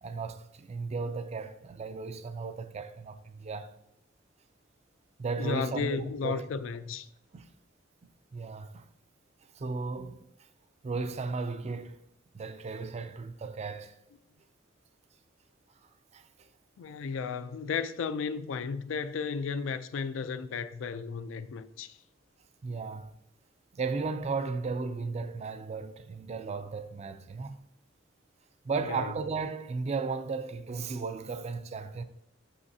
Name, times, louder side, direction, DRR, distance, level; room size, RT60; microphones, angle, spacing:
voice 1, 0.0-3.7 5.2-6.5 7.3-7.5 8.3-8.8 9.6-10.2 10.8-12.0 12.3-14.0 16.1-16.5 22.6-23.1 23.7-27.6 28.6-32.0, right 4 dB, 35° right, 0.4 m, -35 dB
voice 2, 5.4-7.1 16.8-22.0 28.8-29.1, left 5 dB, 80° left, 0.4 m, -34 dB
6.4 x 5.6 x 2.7 m
head